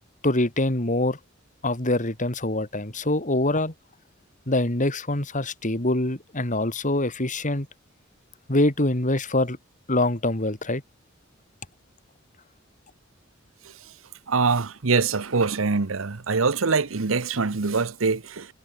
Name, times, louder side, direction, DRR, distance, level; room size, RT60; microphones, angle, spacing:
voice 1, 0.2-1.2 1.6-3.7 4.5-7.7 8.5-9.6 9.9-10.8, left 1 dB, 40° left, 3.3 m, -24 dB
voice 2, 14.3-18.5, right 4 dB, 90° right, 1.0 m, -24 dB
head